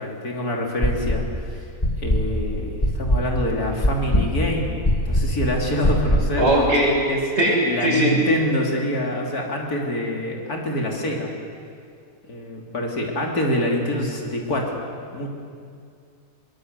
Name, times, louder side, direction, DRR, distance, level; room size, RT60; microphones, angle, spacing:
voice 1, 0.0-1.7 2.0-6.5 7.1-7.2 7.6-11.3 12.3-14.7 15.1-15.3, left 1 dB, 85° left, 0 dB, 3.6 m, -26 dB
sound 1, 0.8-1.4 1.8-6.4, left 1 dB, 25° left, 2.5 m, -21 dB
voice 2, 6.4-6.9 7.4-7.6 7.8-8.2, right 1 dB, 45° right, -4 dB, 7.2 m, -18 dB
23.0 x 21.0 x 8.2 m, 2.3 s
omnidirectional pair, 1.6 m